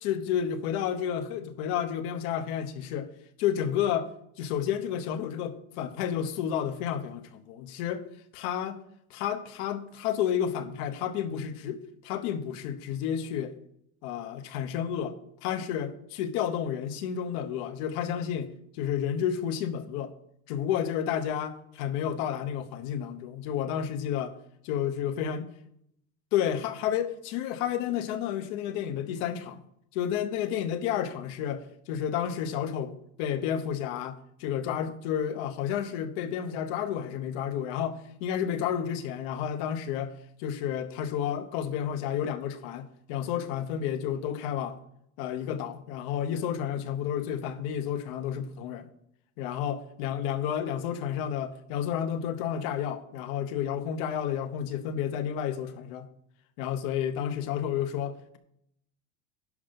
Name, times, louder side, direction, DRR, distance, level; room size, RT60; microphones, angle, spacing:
voice 1, 0.0-3.1 3.4-4.1 4.4-8.0 8.3-8.8 9.1-13.5 14.0-20.1 20.5-24.3 24.7-25.4 26.3-29.6 29.9-44.8 45.2-48.9 49.4-56.1 56.6-58.4, left 9 dB, 70° left, 1.1 m, -31 dB
11.0 x 5.5 x 5.4 m
cardioid pair, 175°, 34 cm